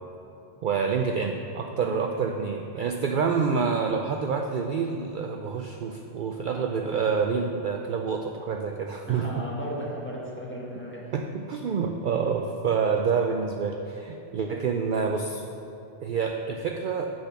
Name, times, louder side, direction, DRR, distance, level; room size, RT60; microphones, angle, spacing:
voice 1, 0.6-9.2 11.1-15.5 16.0-17.1, right 5 dB, 60° right, 4 dB, 0.6 m, -27 dB
voice 2, 6.5-7.0 9.1-11.1 12.1-12.3, equal, 10° left, -5 dB, 1.5 m, -37 dB
8.0 x 6.8 x 5.8 m, 2.9 s
omnidirectional pair, 1.2 m